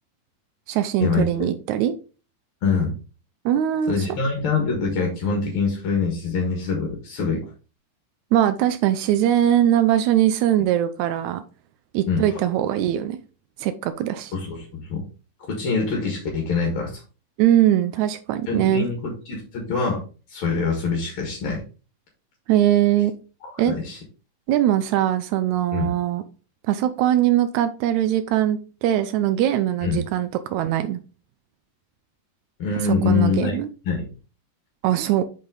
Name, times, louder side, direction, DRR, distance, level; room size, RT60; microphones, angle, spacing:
voice 1, 0.7-1.9 3.4-4.1 8.3-11.4 11.9-13.2 13.6-14.3 17.4-18.9 22.5-23.1 23.6-23.7 24.5-26.2 26.7-31.0 33.0-33.7 34.8-35.2, right 11 dB, 90° right, 10 dB, 1.6 m, -21 dB
voice 2, 2.6-2.9 3.9-7.5 12.1-12.4 14.3-15.0 15.5-17.0 18.5-20.0 20.3-21.6 23.4-24.0 25.7-25.9 29.8-30.0 32.6-33.6 33.8-34.1, left 5 dB, 50° left, 0 dB, 1.8 m, -24 dB
6.0 x 5.4 x 3.6 m, 0.35 s
omnidirectional pair, 4.0 m